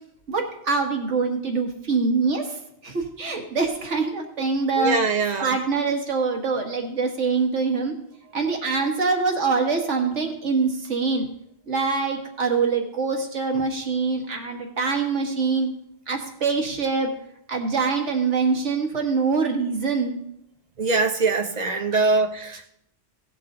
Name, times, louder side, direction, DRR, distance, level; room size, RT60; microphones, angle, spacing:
voice 1, 0.3-5.0 5.4-7.9 8.3-11.3 11.7-15.7 16.1-17.1 17.5-20.2 21.9-22.1, right 4 dB, 85° right, 1.8 m, -24 dB
voice 2, 4.8-5.6 20.8-22.7, right 3 dB, 40° right, 0.8 m, -23 dB
17.5 x 6.0 x 3.8 m
omnidirectional pair, 1.2 m